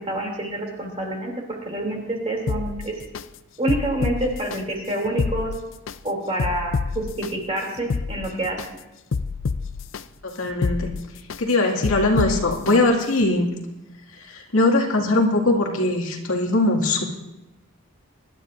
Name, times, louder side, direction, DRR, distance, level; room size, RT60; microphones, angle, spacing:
voice 1, 0.0-1.3 1.6-2.9 3.6-5.5 6.0-8.8, right 1 dB, 25° right, 0 dB, 2.9 m, -27 dB
sound 1, 2.5-3.2 3.7-4.6 5.0-6.0 6.4-7.3 7.8-8.7 9.1-10.0 10.5-11.4 11.8-12.7 13.2-13.3, left 4 dB, 65° left, 0.4 m, -27 dB
voice 2, 10.4-10.9 11.4-13.4 14.3-17.0, left 2 dB, 85° left, 0 dB, 2.2 m, -20 dB
23.5 x 12.0 x 2.6 m, 0.98 s
head